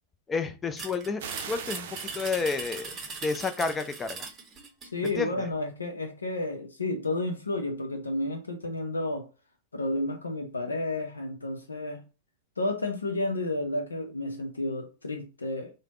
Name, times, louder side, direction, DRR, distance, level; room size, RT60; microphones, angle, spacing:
voice 1, 0.3-2.9 3.2-4.3 5.2-5.3, left 4 dB, 15° left, 8 dB, 0.5 m, -30 dB
sound 1, 0.8-5.2, right 4 dB, 25° right, 0.9 m, -40 dB
sound 2, 1.2-4.5, right 7 dB, 55° right, 0.5 m, -43 dB
voice 2, 4.9-9.3 9.7-12.0 12.6-15.7, left 2 dB, 80° left, 3 dB, 0.6 m, -31 dB
3.3 x 2.1 x 3.6 m, 0.31 s
figure-of-eight pair, 95°, 0 cm